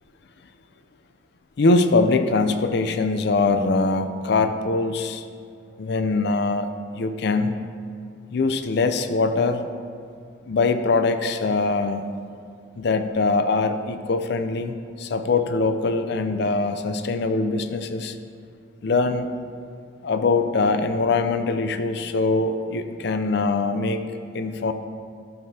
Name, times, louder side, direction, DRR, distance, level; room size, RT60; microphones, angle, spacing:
voice 1, 1.6-5.2 5.8-6.7 6.9-7.6 8.3-9.7 10.5-12.0 12.8-18.2 18.8-19.3 20.0-24.0 24.3-24.7, left 3 dB, 55° left, 8 dB, 0.4 m, -22 dB
12.5 x 6.7 x 2.7 m, 2.3 s
head